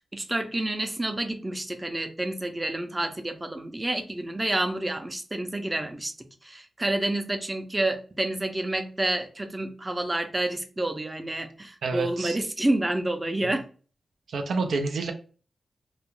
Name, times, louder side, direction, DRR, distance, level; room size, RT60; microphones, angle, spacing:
voice 1, 0.0-6.1 6.4-13.6, right 1 dB, 20° right, 0.5 m, -29 dB
voice 2, 11.8-12.4 13.4-13.6 14.3-15.1, right 3 dB, 90° right, 0.3 m, -29 dB
2.3 x 2.1 x 3.0 m
cardioid pair, 65°, 0 cm